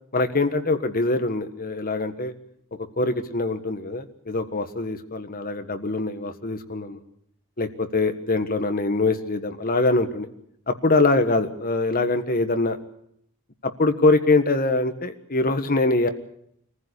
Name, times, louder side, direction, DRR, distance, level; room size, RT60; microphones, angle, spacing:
voice 1, 0.1-2.3 3.0-7.0 7.6-10.3 10.7-12.8 13.6-16.1, left 2 dB, 40° left, 8 dB, 1.6 m, -23 dB
23.5 x 15.0 x 8.3 m, 0.73 s
head